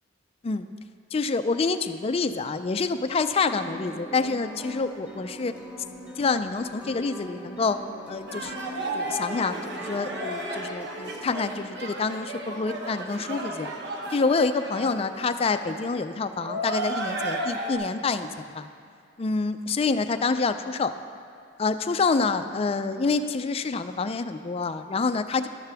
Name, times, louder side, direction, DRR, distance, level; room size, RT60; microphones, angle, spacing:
voice 1, 1.1-5.5 6.2-7.8 8.1-8.5 8.9-13.7 14.1-18.7 19.2-20.9 21.6-25.5, left 4 dB, 30° left, 10 dB, 0.4 m, -27 dB
sound 1, 3.5-11.6, equal, 5° right, 1.7 m, -41 dB
sound 2, 8.3-17.7, right 1 dB, 60° right, 1.2 m, -34 dB
12.5 x 12.0 x 3.4 m, 2.3 s
head